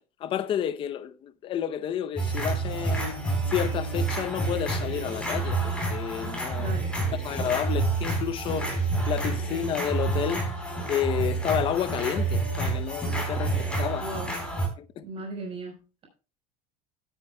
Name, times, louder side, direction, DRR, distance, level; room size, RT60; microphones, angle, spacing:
voice 1, 0.0-3.2 3.5-6.7 7.2-10.4 10.9-14.1 14.8-15.0, left 10 dB, 30° left, 0.7 m, -31 dB
sound 1, 2.2-14.7, right 3 dB, 5° left, 4.0 m, -28 dB
voice 2, 6.6-6.9 14.0-14.3 15.0-16.0, right 2 dB, 30° right, 4.3 m, -37 dB
16.5 x 9.1 x 2.2 m
cardioid pair, 165°, 19 cm